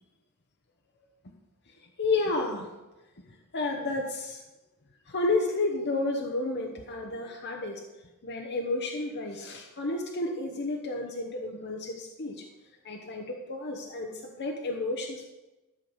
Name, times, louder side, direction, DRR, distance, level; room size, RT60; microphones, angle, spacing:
voice 1, 2.0-2.7 3.3-4.4 5.1-7.8 8.2-12.5 12.8-15.2, left 2 dB, 55° left, 2 dB, 1.0 m, -31 dB
13.5 x 6.5 x 5.5 m, 1.1 s
head